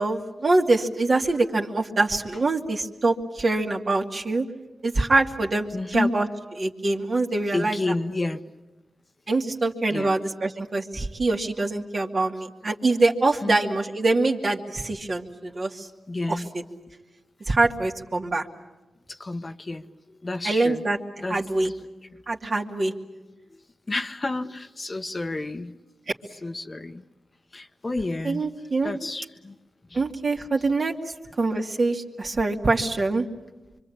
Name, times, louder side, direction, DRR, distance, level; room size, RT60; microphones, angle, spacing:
voice 1, 0.0-4.5 4.8-6.3 6.6-7.8 9.3-15.9 16.3-16.6 17.5-18.5 20.4-21.0 21.3-21.7 22.3-22.9 28.2-28.9 29.9-30.9 31.4-33.3, right 2 dB, 50° right, 1 dB, 2.5 m, -24 dB
voice 2, 5.7-6.1 7.5-8.4 9.9-10.2 13.4-13.8 16.1-16.5 19.1-19.9 20.2-20.8 21.2-21.7 23.9-25.7 26.4-27.0 27.5-28.5 28.8-29.6 29.9-30.0, left 2 dB, 35° left, 8 dB, 1.2 m, -30 dB
25.5 x 25.0 x 8.7 m, 1.1 s
cardioid pair, 45°, 0 cm